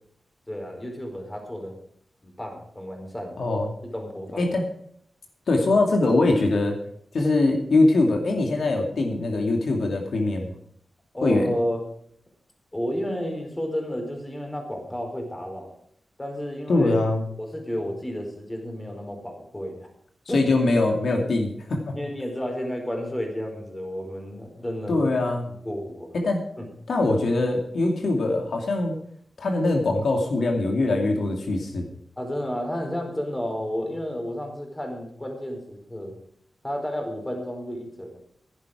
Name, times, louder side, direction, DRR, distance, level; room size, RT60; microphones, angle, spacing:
voice 1, 0.5-1.7 2.2-3.4 3.9-4.5 11.1-11.8 12.7-15.8 16.2-16.9 17.4-19.9 20.3-20.4 21.9-25.1 25.6-26.1 26.6-26.7 32.2-36.1 36.6-38.1, equal, 15° left, 3 dB, 4.5 m, -31 dB
voice 2, 3.4-3.7 4.4-4.7 5.5-6.8 7.1-10.5 11.2-11.5 16.7-17.2 20.3-22.0 24.9-25.5 26.1-26.4 26.9-29.0 29.4-31.8, left 2 dB, 75° left, 2 dB, 2.5 m, -22 dB
16.0 x 11.0 x 4.9 m, 0.67 s
wide cardioid pair, 90°, 0 cm